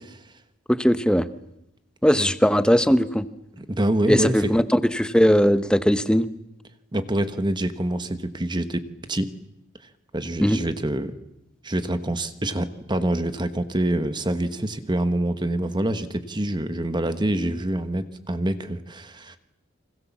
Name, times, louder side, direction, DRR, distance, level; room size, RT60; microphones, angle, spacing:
voice 1, 0.7-1.3 2.0-3.3 4.1-6.3 10.4-10.6, equal, 5° left, 12 dB, 1.0 m, -19 dB
voice 2, 3.6-4.5 6.9-9.3 10.1-11.1 11.6-19.4, right 1 dB, 25° right, 10 dB, 1.3 m, -26 dB
29.0 x 25.5 x 7.3 m, 0.85 s
head